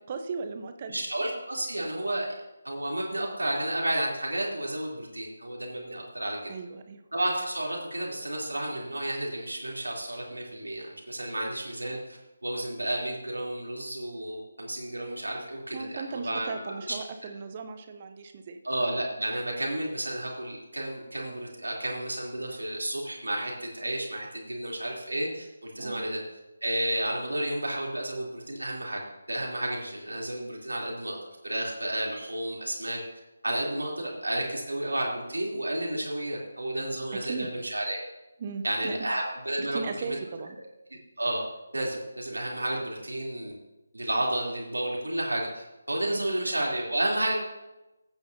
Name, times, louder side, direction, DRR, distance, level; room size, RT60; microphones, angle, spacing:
voice 1, 0.0-1.0 6.5-7.0 15.7-18.6 25.8-26.0 37.2-37.5 38.4-39.0 39.6-40.6 46.1-46.3, right 5 dB, 30° right, 7 dB, 0.8 m, -37 dB
voice 2, 0.9-2.3 2.6-6.4 7.1-16.7 18.6-26.2 26.6-29.0 29.3-31.2 31.4-33.0 33.4-38.0 38.6-40.2 41.2-41.4 41.7-43.5 43.9-47.3, right 1 dB, 70° right, -2 dB, 3.3 m, -31 dB
15.0 x 9.2 x 2.8 m, 0.98 s
figure-of-eight pair, 150°, 0 cm